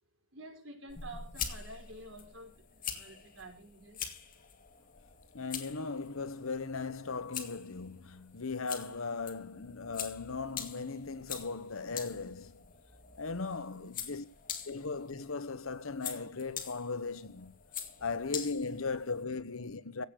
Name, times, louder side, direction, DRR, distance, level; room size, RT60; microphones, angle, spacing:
voice 1, 0.3-4.1 13.7-14.2 18.0-18.1, right 1 dB, 70° right, 5.2 m, -50 dB
sound 1, 0.9-19.2, left 7 dB, 40° left, 2.3 m, -45 dB
voice 2, 5.3-12.6 13.2-14.2 14.7-17.5 18.0-20.1, left 4 dB, 80° left, 1.1 m, -37 dB
16.5 x 6.5 x 7.7 m
head